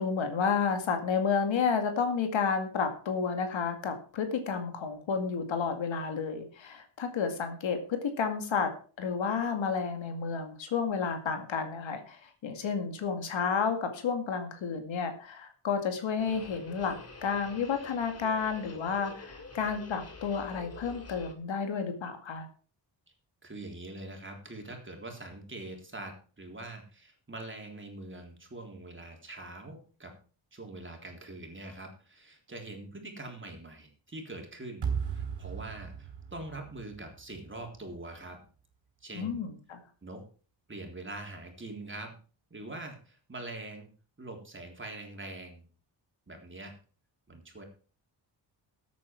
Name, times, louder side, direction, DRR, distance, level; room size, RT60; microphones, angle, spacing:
voice 1, 0.0-8.7 9.0-16.9 17.2-22.5 39.1-39.8, left 6 dB, 80° left, 6 dB, 2.2 m, -31 dB
sound 1, 16.2-21.3, left 3 dB, 35° left, 2.5 m, -47 dB
voice 2, 23.4-30.1 30.5-38.4 39.0-39.4 40.0-40.3 40.7-42.1 42.5-43.9 44.2-45.6 46.3-46.7 47.3-47.6, right 2 dB, 25° right, 2 dB, 3.6 m, -43 dB
sound 2, 34.8-37.9, right 7 dB, 70° right, 3.3 m, -36 dB
13.5 x 8.5 x 4.7 m, 0.40 s
cardioid pair, 95°, 45 cm